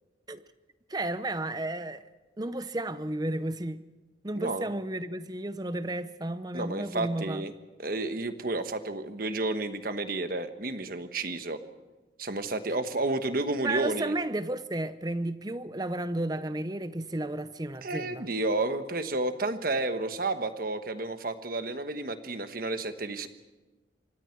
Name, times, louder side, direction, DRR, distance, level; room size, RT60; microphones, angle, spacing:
voice 1, 0.9-2.0 2.4-3.8 4.2-7.5 13.6-18.3, right 1 dB, 20° right, 0.7 m, -33 dB
voice 2, 6.5-7.5 7.8-11.6 12.2-14.1 17.8-23.3, right 2 dB, 50° right, 1.3 m, -31 dB
26.5 x 23.5 x 4.6 m
head